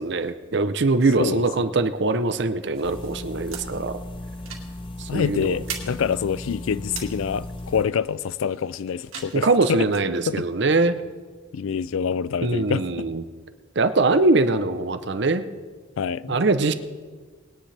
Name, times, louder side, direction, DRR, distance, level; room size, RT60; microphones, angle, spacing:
voice 1, 0.0-4.0 5.0-5.6 9.3-11.0 12.4-13.2 13.8-15.4 16.3-16.7, right 3 dB, 55° right, 0.7 m, -22 dB
voice 2, 1.2-1.7 5.1-9.9 10.3-10.4 11.5-13.0 16.0-16.4, left 7 dB, 80° left, 0.4 m, -26 dB
sound 1, 2.7-10.0, right 7 dB, 90° right, 2.2 m, -42 dB
sound 2, 2.8-7.8, left 1 dB, 25° left, 0.6 m, -36 dB
20.5 x 10.5 x 3.4 m
head